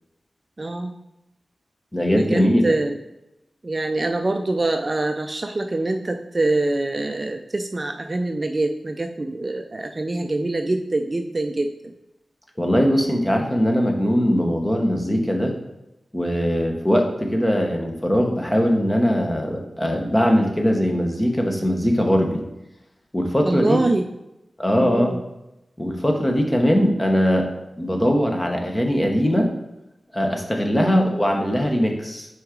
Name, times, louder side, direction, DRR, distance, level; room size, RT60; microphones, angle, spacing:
voice 1, 0.6-0.9 2.1-3.0 3.6-11.9 23.4-24.0 24.8-25.2 30.7-31.0, right 2 dB, 30° right, 5 dB, 0.3 m, -24 dB
voice 2, 1.9-2.8 12.6-15.5 16.1-22.4 23.1-23.8 24.6-25.1 25.8-27.5 27.8-29.5 30.1-32.3, equal, 15° left, 2 dB, 0.9 m, -20 dB
5.8 x 4.7 x 3.7 m, 0.94 s
wide cardioid pair, 120°, 0 cm